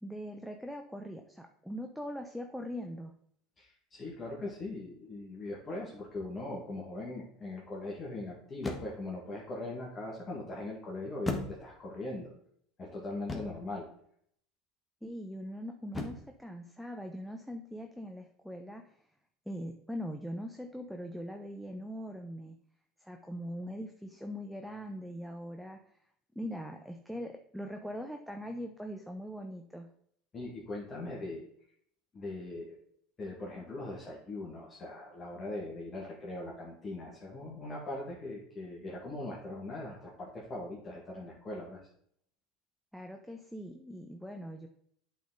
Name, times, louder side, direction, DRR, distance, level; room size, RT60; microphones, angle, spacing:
voice 1, 0.0-3.1 15.0-19.0 19.5-22.6 23.0-25.8 26.4-29.9 42.9-44.7, equal, ahead, 3 dB, 0.8 m, -41 dB
voice 2, 3.6-12.3 12.8-13.9 30.3-31.4 32.1-32.8 33.2-41.8, left 2 dB, 30° left, -3 dB, 1.9 m, -40 dB
sound 1, 6.2-6.5 8.6-9.2 11.3-12.0 13.3-13.7 15.9-16.4, left 2 dB, 15° left, 1.4 m, -38 dB
8.3 x 4.1 x 3.9 m, 0.65 s
hypercardioid pair, 80°, 0 cm